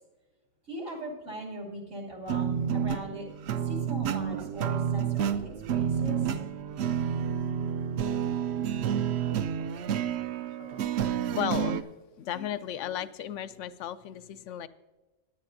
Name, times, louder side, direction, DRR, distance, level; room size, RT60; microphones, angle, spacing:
voice 1, 0.7-3.3 3.6-6.3, right 1 dB, 85° right, -2 dB, 3.1 m, -40 dB
sound 1, 2.3-11.8, right 8 dB, 70° right, 0.8 m, -29 dB
voice 2, 10.6-10.9 11.4-11.9 12.2-14.7, left 10 dB, 85° left, 14 dB, 0.9 m, -35 dB
17.0 x 10.5 x 2.6 m, 1.2 s
omnidirectional pair, 1.2 m